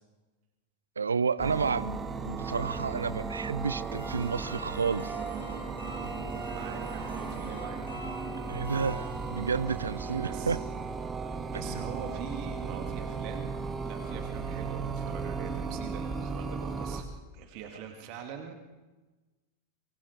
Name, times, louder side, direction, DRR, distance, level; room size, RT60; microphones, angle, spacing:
voice 1, 1.0-2.0 2.2-5.2 8.5-10.6 11.5-11.9, right 5 dB, 75° right, 19 dB, 0.7 m, -31 dB
sound 1, 1.4-17.0, right 4 dB, 20° right, 1.8 m, -36 dB
sound 2, 4.0-9.7, equal, 75° left, 7.4 m, -45 dB
voice 2, 6.5-7.8 10.2-10.6 11.5-17.1 17.3-18.5, right 7 dB, 45° right, 5 dB, 2.5 m, -43 dB
24.5 x 23.5 x 4.8 m, 1.2 s
figure-of-eight pair, 90°, 0 cm